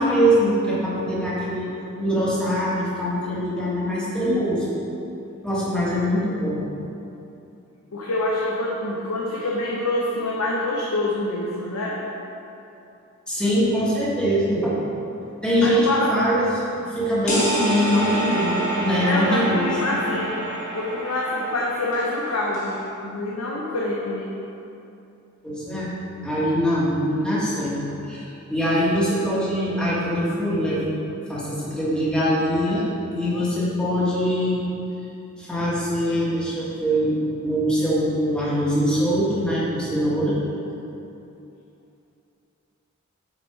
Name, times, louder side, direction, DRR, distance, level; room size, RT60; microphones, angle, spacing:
voice 1, 0.0-1.7 2.0-4.7 5.4-6.6 13.3-14.7 15.4-16.5 17.0-20.0 25.4-25.9 26.2-27.8 28.1-30.9 31.3-32.8 33.2-34.6 35.4-37.2 37.4-40.3, equal, 5° left, -8 dB, 1.4 m, -23 dB
voice 2, 7.9-12.1 15.6-16.2 19.0-20.4 20.7-24.3, left 2 dB, 85° left, -4 dB, 0.7 m, -26 dB
sound 1, 17.3-22.8, right 1 dB, 35° left, 1.4 m, -28 dB
6.4 x 4.4 x 4.5 m, 2.8 s
head